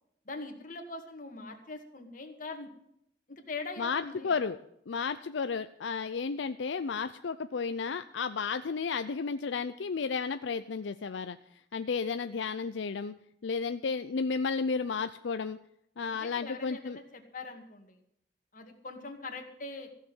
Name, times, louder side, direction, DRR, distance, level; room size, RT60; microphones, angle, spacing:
voice 1, 0.3-2.7 3.3-4.3 16.0-18.0 18.5-19.9, left 3 dB, 45° left, 4 dB, 2.1 m, -42 dB
voice 2, 3.8-4.6 4.9-11.4 11.7-13.1 13.4-15.6 16.0-17.0, left 5 dB, 80° left, 10 dB, 0.5 m, -33 dB
15.0 x 6.7 x 9.4 m, 0.72 s
head